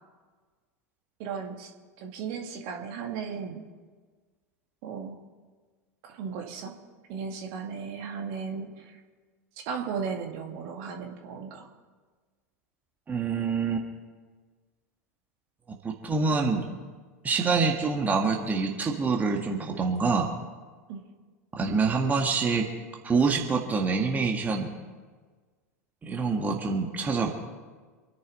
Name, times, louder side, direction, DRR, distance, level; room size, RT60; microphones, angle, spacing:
voice 1, 1.2-1.7 2.0-3.6 4.8-5.2 6.0-6.8 7.1-9.0 9.7-11.7 20.9-21.1, right 6 dB, 50° right, 2 dB, 2.2 m, -36 dB
voice 2, 13.1-13.9 15.8-16.6 17.2-20.3 21.6-22.7 23.0-24.7 26.0-27.3, right 4 dB, 20° right, 1 dB, 1.9 m, -26 dB
26.5 x 10.5 x 4.2 m, 1.4 s
figure-of-eight pair, 85°, 9 cm